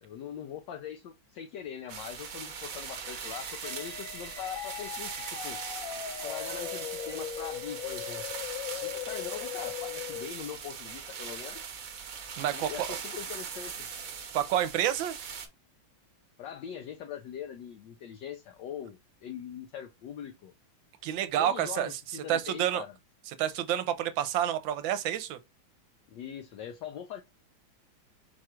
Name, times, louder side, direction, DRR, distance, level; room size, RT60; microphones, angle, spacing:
voice 1, 0.0-5.6 6.2-8.2 8.8-11.7 12.5-13.9 16.4-20.5 21.4-22.9 26.1-27.2, left 9 dB, 70° left, 1.2 m, -42 dB
sound 1, 1.8-11.5, right 1 dB, 5° right, 0.7 m, -53 dB
sound 2, 1.9-15.5, right 6 dB, 55° right, 1.1 m, -40 dB
sound 3, 3.6-10.3, left 11 dB, 90° left, 0.7 m, -39 dB
voice 2, 12.4-13.0 14.3-15.2 21.0-22.8 23.4-25.4, right 11 dB, 75° right, 1.3 m, -29 dB
4.8 x 2.4 x 4.3 m
omnidirectional pair, 2.2 m